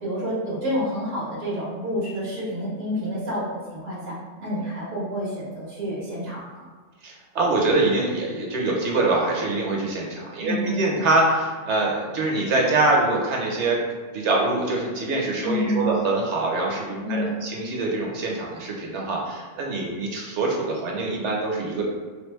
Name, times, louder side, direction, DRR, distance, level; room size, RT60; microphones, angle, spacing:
voice 1, 0.0-6.6 10.4-10.8 15.4-15.8 17.0-17.4, equal, 85° right, -6 dB, 1.6 m, -29 dB
voice 2, 7.0-13.8 14.1-21.8, right 2 dB, 70° right, -1 dB, 1.1 m, -24 dB
3.5 x 3.3 x 3.2 m, 1.5 s
omnidirectional pair, 1.3 m